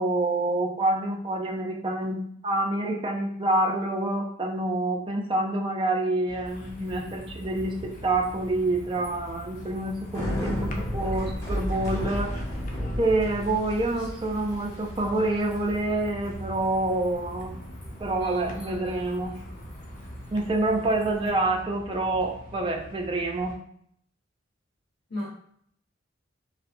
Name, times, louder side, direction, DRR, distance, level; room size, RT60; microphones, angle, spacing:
voice 1, 0.0-12.3 13.0-17.6 18.0-19.4 20.3-23.6, right 2 dB, 25° right, 0 dB, 0.4 m, -27 dB
sound 1, 6.3-23.6, equal, 45° left, 0.4 m, -44 dB
Bicycle, 6.5-21.3, equal, 15° left, 0.8 m, -36 dB
voice 2, 18.1-19.7 25.1-25.3, left 1 dB, 80° left, -11 dB, 1.0 m, -39 dB
2.7 x 2.3 x 2.4 m, 0.67 s
head